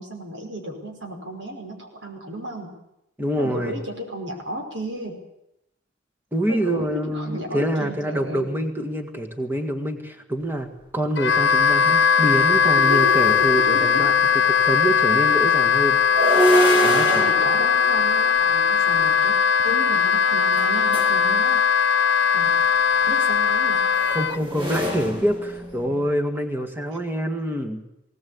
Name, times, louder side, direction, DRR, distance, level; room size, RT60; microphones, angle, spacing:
voice 1, 0.0-2.8 3.4-5.2 6.5-8.5 12.8-14.1 17.2-21.6 22.3-22.6 23.1-23.9, equal, 75° right, 2 dB, 5.3 m, -34 dB
voice 2, 3.2-3.8 6.3-14.1 14.5-16.0 16.8-17.3 24.1-27.8, equal, 10° right, 5 dB, 1.9 m, -26 dB
Wind instrument woodwind instrument, 11.2-24.4, left 7 dB, 65° left, 0.8 m, -19 dB
sound 1, 11.6-11.7 12.1-14.1 15.9-19.2 20.5-21.2 22.6-26.1, right 1 dB, 25° right, 2.6 m, -26 dB
20.0 x 18.5 x 8.6 m, 0.83 s
head